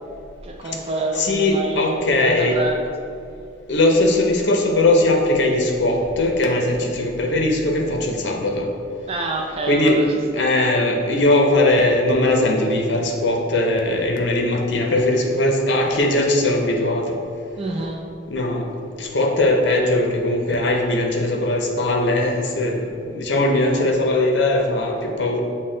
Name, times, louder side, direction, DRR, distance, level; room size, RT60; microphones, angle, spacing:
voice 1, 0.4-2.8 9.1-10.0 10.4-10.5 17.6-18.0, right 3 dB, 30° right, 1 dB, 0.4 m, -27 dB
voice 2, 1.1-2.6 3.7-8.7 9.7-17.2 18.3-18.7 19.0-25.4, left 1 dB, 65° left, 1 dB, 0.6 m, -20 dB
6.2 x 2.1 x 3.7 m, 2.5 s
head